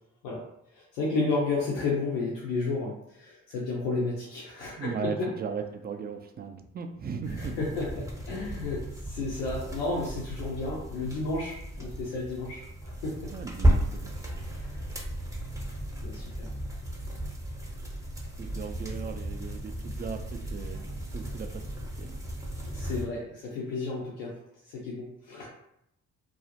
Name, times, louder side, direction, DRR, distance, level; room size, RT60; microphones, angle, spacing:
voice 1, 0.7-4.9 7.3-13.3 14.5-14.8 16.0-16.5 22.7-24.3 24.6-25.5, left 3 dB, 90° left, -4 dB, 0.6 m, -32 dB
voice 2, 4.8-7.6 13.3-14.2 18.4-21.6 22.0-22.2, right 6 dB, 25° right, 6 dB, 0.3 m, -37 dB
sound 1, 7.2-23.0, right 1 dB, 10° right, 0.7 m, -34 dB
2.4 x 2.1 x 2.8 m, 0.77 s
hypercardioid pair, 45°, 40 cm